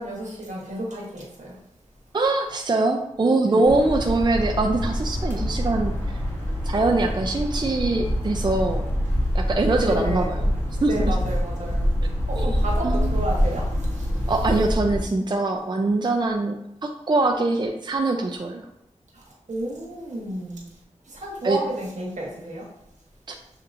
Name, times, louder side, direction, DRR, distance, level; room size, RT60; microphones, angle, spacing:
voice 1, 0.0-1.6 3.5-3.7 9.8-10.3 10.8-11.9 12.3-14.3 19.1-20.7 21.0-22.7, right 1 dB, 80° right, -3 dB, 1.2 m, -32 dB
voice 2, 2.1-5.9 6.6-8.8 9.3-10.5 10.8-11.1 12.4-12.6 12.8-13.1 14.3-18.6 21.4-21.6, right 2 dB, 35° right, 2 dB, 0.4 m, -23 dB
sound 1, 3.7-15.0, equal, 15° left, 1.6 m, -25 dB
6.6 x 2.9 x 2.5 m, 0.80 s
wide cardioid pair, 80°, 12 cm